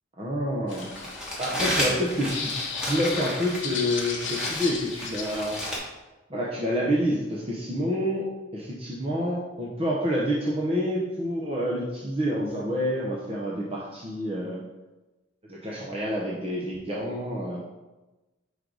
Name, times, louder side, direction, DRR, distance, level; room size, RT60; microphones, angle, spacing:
voice 1, 0.2-0.9 1.4-2.5 2.9-5.6 6.3-8.3 8.5-14.6 15.5-17.6, equal, 30° right, -5 dB, 0.7 m, -28 dB
sound 1, 0.7-5.7, left 5 dB, 60° left, 1.0 m, -36 dB
Crumpling crinkling, 0.7-5.8, left 1 dB, 5° right, 1.3 m, -32 dB
5.2 x 4.7 x 3.9 m, 1.1 s
head